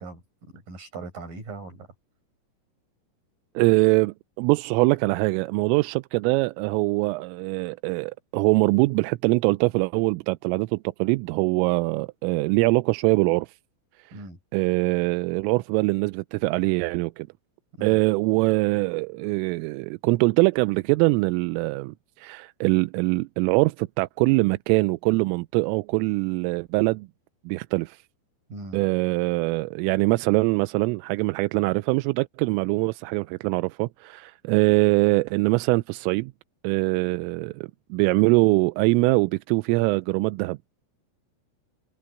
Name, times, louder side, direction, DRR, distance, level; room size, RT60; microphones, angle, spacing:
voice 1, 0.0-1.9 14.1-14.4 17.7-18.0 28.5-28.8, right 3 dB, 45° right, 9.4 m, -40 dB
voice 2, 3.6-13.5 14.5-17.3 17.8-27.1 27.5-28.0 28.7-36.3 36.6-40.6, right 25 dB, 90° right, 3.2 m, -23 dB
omnidirectional pair, 5.7 m